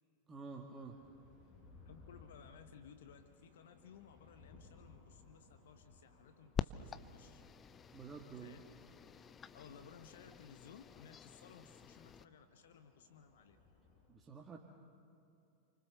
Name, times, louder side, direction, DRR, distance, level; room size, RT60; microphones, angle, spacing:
voice 1, 0.3-1.0 7.9-8.6 14.1-14.6, right 4 dB, 20° right, 0 dB, 1.9 m, -49 dB
sound 1, 0.8-14.1, left 3 dB, 45° left, 7.9 m, -64 dB
voice 2, 1.8-7.4 8.4-8.7 9.5-13.6, left 7 dB, 60° left, 9 dB, 1.1 m, -59 dB
sound 2, 6.6-12.3, left 7 dB, 20° left, 0.6 m, -47 dB
30.0 x 24.5 x 6.9 m, 2.5 s
figure-of-eight pair, 90°, 0 cm